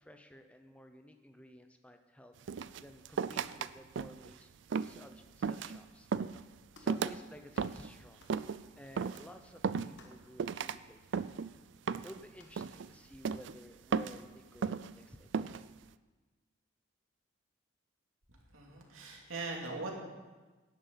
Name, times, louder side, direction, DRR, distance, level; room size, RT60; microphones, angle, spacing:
voice 1, 0.0-2.3 2.8-4.5 4.8-6.5 6.8-8.3 8.8-11.3 12.0-15.7, equal, 5° left, 6 dB, 0.7 m, -54 dB
sound 1, 2.5-3.7 4.0-4.3 4.7-5.0 5.4-5.8 6.1-6.4 6.9-7.2 7.6-7.9 8.3-8.6 9.0-9.2 9.6-10.1 10.4-10.8 11.1-11.5 11.9-12.2 12.6-12.9 13.2-13.5 13.9-14.2 14.6-14.9 15.3-15.6, right 6 dB, 65° right, 0.4 m, -35 dB
sound 2, 6.7-7.0 7.5-7.8 8.2-8.4 9.1-9.4 10.0-10.3 11.1-11.3 12.4-12.6, left 3 dB, 60° left, 1.4 m, -61 dB
voice 2, 18.5-19.9, right 3 dB, 85° right, 0 dB, 2.7 m, -40 dB
17.0 x 11.5 x 4.0 m, 1.2 s
head